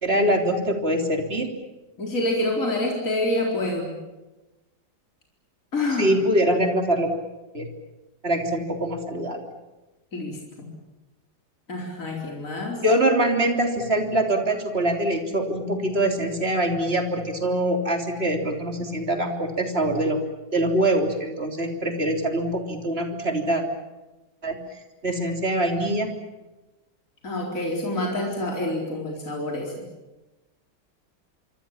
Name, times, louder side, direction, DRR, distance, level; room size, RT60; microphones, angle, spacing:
voice 1, 0.0-1.5 6.0-7.1 7.5-7.7 8.2-9.4 12.8-20.2 20.5-23.6 24.4-24.6 25.0-26.1, right 1 dB, 35° right, 3 dB, 3.7 m, -23 dB
voice 2, 2.0-4.0 5.7-6.1 10.1-10.7 11.7-12.8 27.2-29.9, left 1 dB, 45° left, -1 dB, 4.7 m, -27 dB
26.0 x 25.5 x 7.4 m, 1.1 s
omnidirectional pair, 1.9 m